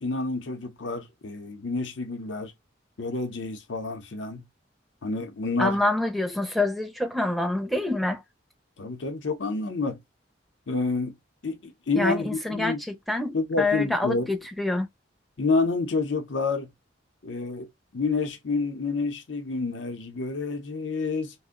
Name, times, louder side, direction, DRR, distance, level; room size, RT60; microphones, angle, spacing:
voice 1, 0.0-2.5 3.0-4.4 5.0-5.8 8.8-10.0 10.7-11.1 11.4-12.8 13.3-14.3 15.4-16.7 17.2-21.3, left 3 dB, 80° left, 0.7 m, -28 dB
voice 2, 5.6-8.2 12.0-14.9, left 2 dB, ahead, 0.5 m, -26 dB
2.5 x 2.1 x 3.5 m
head